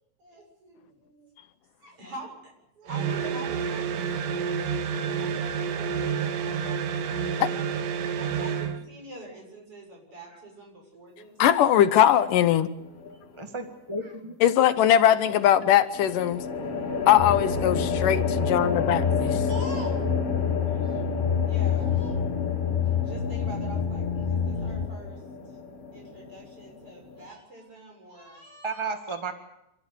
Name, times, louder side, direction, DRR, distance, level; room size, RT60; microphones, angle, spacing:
voice 1, 0.2-1.3 1.8-11.7 12.8-13.2 14.0-14.1 15.2-15.7 16.4-16.6 19.5-20.0 20.6-21.1 21.5-22.2 22.8-25.6 25.9-29.0, right 1 dB, 40° right, 1 dB, 8.1 m, -46 dB
sound 1, 2.9-8.8, right 7 dB, 75° right, 2.8 m, -29 dB
voice 2, 11.4-12.7 14.4-16.4 17.1-19.4, left 11 dB, 75° left, 12 dB, 2.5 m, -20 dB
sound 2, 12.8-13.4 15.9-27.3, left 4 dB, 45° left, 3.7 m, -32 dB
voice 3, 13.4-14.3 28.6-29.3, right 3 dB, 20° right, 6 dB, 0.7 m, -33 dB
sound 3, 17.2-24.9, left 7 dB, 25° left, 1.2 m, -28 dB
28.0 x 13.0 x 9.8 m, 0.84 s
omnidirectional pair, 3.9 m